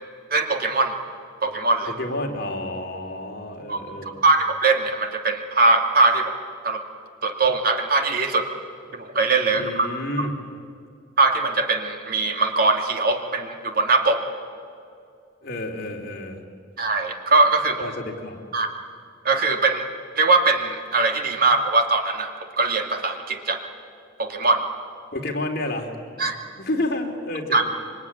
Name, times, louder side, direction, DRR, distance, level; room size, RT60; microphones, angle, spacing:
voice 1, 0.3-0.9 1.4-1.9 3.7-6.3 6.6-6.8 7.2-8.5 8.9-9.9 10.2-10.3 11.2-14.2 16.8-17.8 18.5-18.7 19.2-19.9 20.2-23.6 24.2-24.6 26.2-26.4 27.5-27.6, right 3 dB, 50° right, 4 dB, 2.4 m, -21 dB
voice 2, 1.9-4.2 9.5-10.3 15.4-16.4 17.8-18.4 25.1-25.9 26.6-27.7, left 1 dB, 50° left, 2 dB, 3.1 m, -30 dB
26.0 x 23.5 x 9.8 m, 2.3 s
head